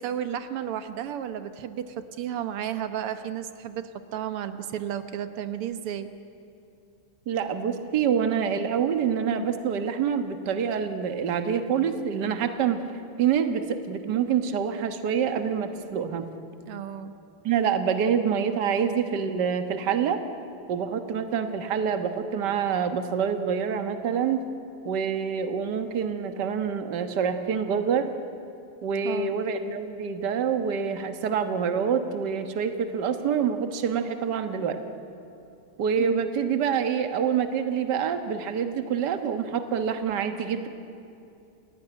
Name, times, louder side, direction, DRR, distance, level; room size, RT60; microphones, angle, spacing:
voice 1, 0.0-6.1 16.7-17.1 29.0-29.4 36.0-36.2, right 10 dB, 90° right, 10 dB, 2.0 m, -33 dB
voice 2, 7.3-12.8 13.2-16.3 17.4-20.2 20.7-24.4 24.9-28.1 28.8-34.8 35.8-40.7, right 7 dB, 55° right, 8 dB, 1.8 m, -26 dB
28.0 x 18.0 x 10.0 m, 2.7 s
omnidirectional pair, 2.4 m